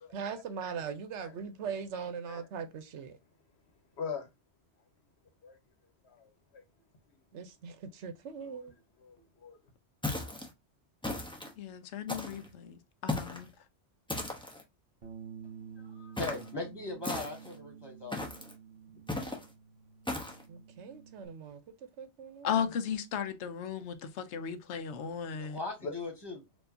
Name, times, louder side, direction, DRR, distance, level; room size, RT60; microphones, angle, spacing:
voice 1, 0.1-3.2 7.3-8.7 20.5-21.6 22.0-22.6, right 6 dB, 85° right, 1.0 m, -40 dB
voice 2, 4.0-4.3 5.4-5.6 6.0-6.6 8.4-8.7 9.0-9.6 25.8-26.0, left 5 dB, 70° left, 1.2 m, -41 dB
sound 1, 10.0-10.5 11.0-11.5 12.1-12.5 13.1-13.5 14.1-14.6 16.2-16.5 17.0-17.6 18.1-18.5 19.1-19.5 20.1-20.4, left 2 dB, 5° left, 0.8 m, -36 dB
voice 3, 11.6-13.5 22.4-25.6, left 7 dB, 90° left, 1.0 m, -35 dB
Bass guitar, 15.0-21.3, right 7 dB, 55° right, 1.2 m, -50 dB
voice 4, 15.8-18.2 25.3-26.4, left 3 dB, 20° left, 1.6 m, -39 dB
4.5 x 2.8 x 2.6 m
omnidirectional pair, 1.2 m